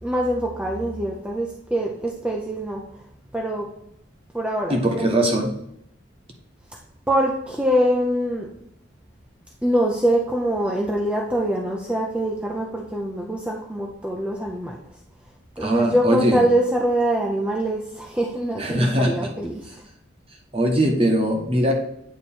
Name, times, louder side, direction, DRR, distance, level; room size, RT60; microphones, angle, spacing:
voice 1, 0.0-2.8 3.3-3.7 4.3-5.1 7.1-8.5 9.6-14.8 15.6-19.8, right 1 dB, 5° right, -2 dB, 0.5 m, -24 dB
voice 2, 4.7-5.5 15.6-16.4 18.6-19.3 20.5-21.7, right 1 dB, 30° right, 1 dB, 1.1 m, -21 dB
9.1 x 3.1 x 4.3 m, 0.72 s
head